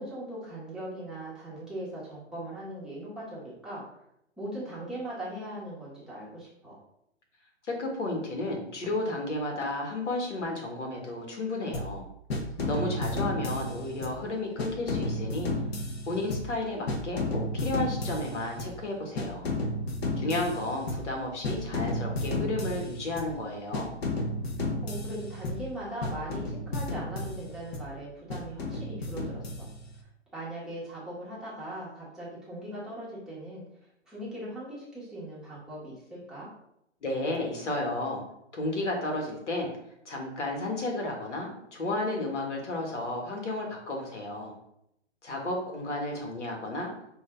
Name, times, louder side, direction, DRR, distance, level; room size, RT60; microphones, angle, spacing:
voice 1, 0.0-3.8 4.4-6.7 12.9-13.2 24.6-29.7 30.3-33.6 34.0-36.5, right 1 dB, ahead, -9 dB, 0.8 m, -40 dB
voice 2, 7.6-12.0 12.7-15.5 16.1-19.5 20.2-24.0 37.0-38.2 38.5-39.7 40.0-44.5 45.2-46.9, left 2 dB, 80° left, 1 dB, 1.7 m, -32 dB
sound 1, 11.7-12.0 12.3-14.3 14.6-16.6 16.9-18.8 19.2-21.2 21.4-23.4 23.7-25.7 26.0-27.9 28.3-30.0, left 2 dB, 60° left, 1.0 m, -33 dB
5.5 x 2.7 x 3.4 m, 0.78 s
hypercardioid pair, 150°, 35 cm